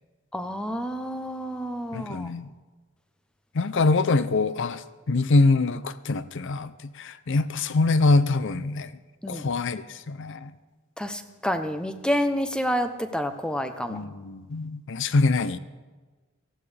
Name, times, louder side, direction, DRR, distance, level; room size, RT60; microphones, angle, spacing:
voice 1, 0.3-2.3 9.2-9.5 11.0-14.0, equal, 5° left, 8 dB, 0.7 m, -29 dB
voice 2, 1.9-2.5 3.5-4.8 5.1-8.9 9.3-10.5 13.9-15.6, left 3 dB, 55° left, 14 dB, 0.6 m, -24 dB
18.5 x 15.0 x 3.4 m, 1.3 s
head